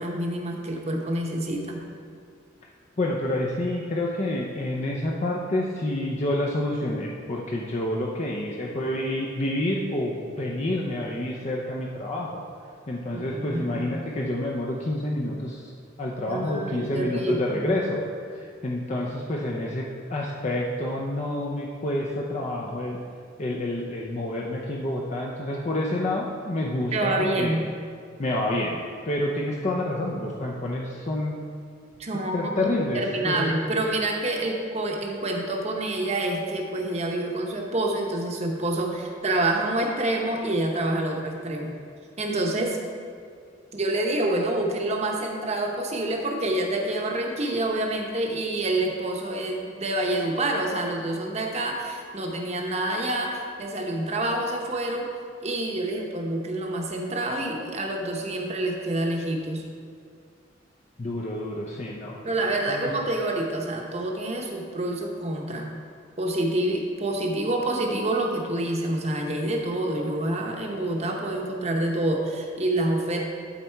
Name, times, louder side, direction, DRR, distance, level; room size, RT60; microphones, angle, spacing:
voice 1, 0.0-1.8 13.1-14.0 16.2-17.8 26.9-27.6 32.0-32.6 32.9-41.8 42.2-42.8 43.7-55.1 55.4-59.6 62.2-65.8 66.2-73.2, right 1 dB, 35° right, 1 dB, 0.9 m, -27 dB
voice 2, 3.0-12.4 12.9-15.7 16.0-18.0 18.3-19.8 20.1-23.0 23.4-27.5 28.2-31.4 32.3-33.5 61.0-62.2 62.7-62.9, left 1 dB, 35° left, -2 dB, 0.6 m, -28 dB
11.0 x 4.2 x 4.5 m, 2.2 s
head